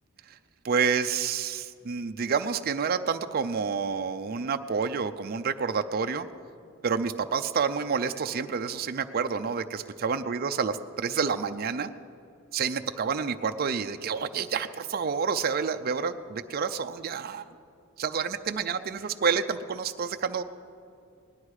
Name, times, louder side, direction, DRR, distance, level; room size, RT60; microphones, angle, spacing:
voice 1, 0.6-6.3 6.8-10.7 11.0-11.9 12.5-17.4 18.0-20.4, right 6 dB, 45° right, 8 dB, 0.5 m, -29 dB
18.5 x 11.5 x 4.8 m, 2.4 s
head